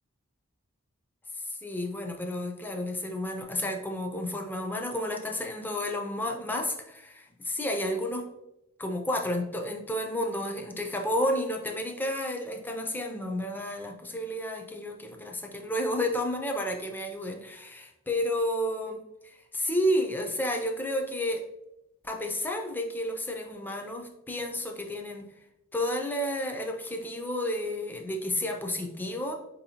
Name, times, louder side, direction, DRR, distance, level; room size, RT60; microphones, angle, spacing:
voice 1, 1.4-8.3 8.8-21.4 22.0-25.3 25.7-29.3, left 1 dB, 10° left, 3 dB, 0.3 m, -31 dB
4.0 x 2.7 x 2.8 m, 0.86 s
head